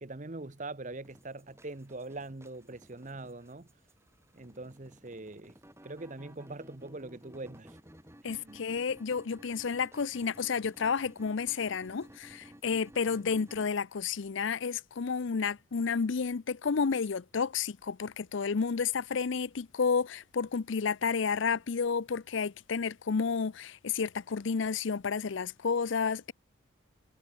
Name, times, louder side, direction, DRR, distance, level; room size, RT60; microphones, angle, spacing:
voice 1, 0.0-3.7 4.3-5.6 5.8-7.8 8.2-8.7 13.2-13.3, right 2 dB, 35° right, 1.0 m, -43 dB
sound 1, 1.0-13.7, equal, 15° right, 6.9 m, -55 dB
voice 2, 8.2-26.3, left 5 dB, 65° left, 0.5 m, -31 dB
head